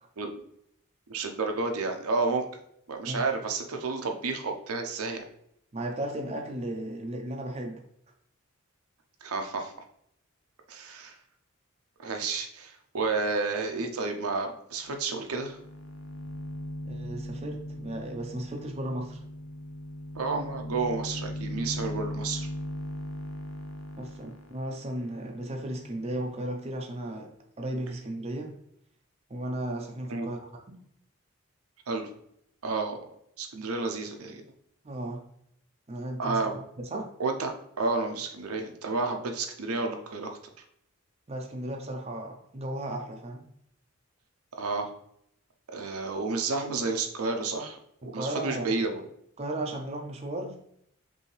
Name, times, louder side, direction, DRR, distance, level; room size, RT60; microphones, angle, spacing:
voice 1, 1.1-2.4 2.9-5.3 9.2-9.7 10.7-11.2 12.0-15.6 20.1-22.5 30.1-30.3 31.9-32.1 32.6-33.0 33.4-34.4 36.2-36.6 36.9-37.5 37.8-40.3 44.6-44.9 45.7-47.8 48.1-49.0, right 3 dB, 85° right, 4 dB, 0.7 m, -31 dB
voice 2, 5.7-7.8 16.9-19.2 24.0-27.3 27.6-28.5 29.3-30.4 30.7-30.8 34.8-35.2 35.9-37.1 41.3-43.5 48.0-48.7 49.4-50.6, right 1 dB, 30° right, 2 dB, 0.5 m, -35 dB
sound 1, 14.9-15.0 15.3-26.4, equal, 65° left, 0.6 m, -39 dB
5.2 x 2.7 x 3.2 m, 0.72 s
head